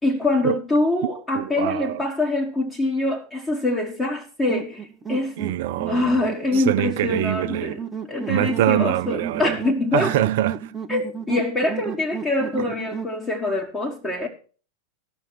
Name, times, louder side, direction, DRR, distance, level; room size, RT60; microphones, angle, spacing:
voice 1, 0.0-5.3 5.9-7.8 8.1-10.1 10.9-14.3, left 2 dB, 15° left, 1.7 m, -24 dB
voice 2, 1.3-2.0 5.4-6.2 6.5-7.8 8.3-9.6 9.9-10.7, right 13 dB, 50° right, 0.5 m, -24 dB
sound 1, 4.5-13.2, right 6 dB, 15° right, 0.8 m, -33 dB
14.0 x 6.4 x 6.1 m
figure-of-eight pair, 90°, 0 cm